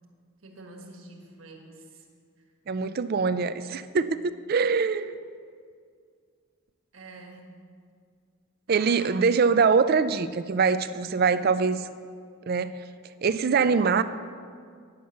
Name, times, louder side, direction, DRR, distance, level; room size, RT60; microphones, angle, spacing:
voice 1, 0.4-2.1 2.4-2.5 6.9-7.5 8.7-9.2 11.3-11.5 13.5-13.7, right 2 dB, 65° right, 2 dB, 1.5 m, -47 dB
voice 2, 2.7-5.2 8.7-11.8 12.5-12.8 13.2-14.0, right 5 dB, 45° right, 13 dB, 0.4 m, -23 dB
9.5 x 6.4 x 8.0 m, 2.1 s
head